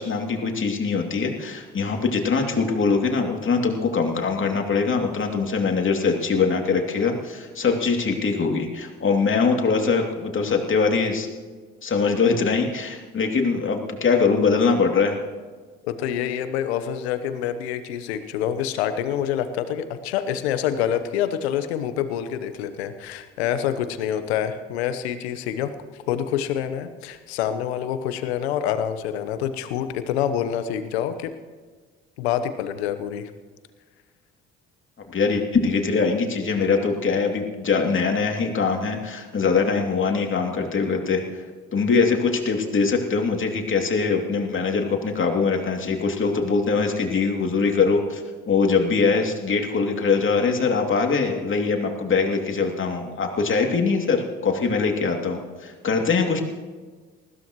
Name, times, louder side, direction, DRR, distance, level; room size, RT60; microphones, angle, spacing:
voice 1, 0.0-11.3 11.8-15.2 35.1-41.4 41.7-48.2 48.5-56.4, left 4 dB, 40° left, 2 dB, 2.7 m, -22 dB
voice 2, 15.8-25.7 26.1-31.3 32.2-33.3, left 9 dB, 80° left, 11 dB, 1.0 m, -26 dB
20.0 x 15.5 x 3.1 m, 1.5 s
hypercardioid pair, 55°, 32 cm